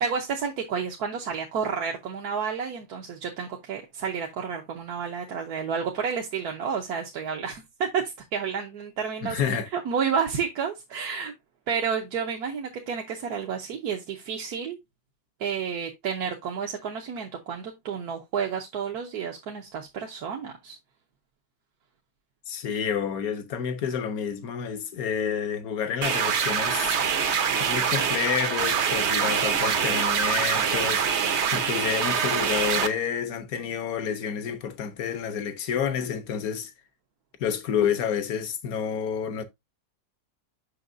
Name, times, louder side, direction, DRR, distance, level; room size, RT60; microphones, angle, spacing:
voice 1, 0.0-9.4 9.7-11.3 11.7-14.8 15.4-20.8, right 6 dB, 75° right, 1.4 m, -30 dB
voice 2, 9.2-9.7 22.5-27.0 27.6-31.1 31.5-36.7 37.4-39.4, left 7 dB, 65° left, 1.3 m, -29 dB
sound 1, 26.0-32.9, right 7 dB, 55° right, 0.9 m, -24 dB
6.4 x 5.8 x 2.6 m
omnidirectional pair, 1.7 m